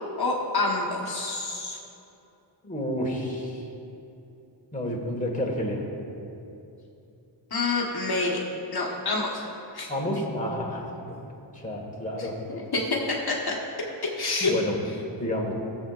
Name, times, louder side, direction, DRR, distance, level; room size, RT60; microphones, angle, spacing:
voice 1, 0.2-1.8 7.5-8.4 8.7-9.4 9.7-9.9 12.2-12.8 13.1-13.6 14.0-14.5, left 3 dB, 55° left, -2 dB, 1.3 m, -27 dB
voice 2, 2.6-3.6 4.7-5.8 9.9-10.9 11.5-12.4 14.4-14.8 15.2-15.5, left 1 dB, 15° left, -2 dB, 1.6 m, -30 dB
19.0 x 7.6 x 2.5 m, 2.8 s
wide cardioid pair, 105°, 46 cm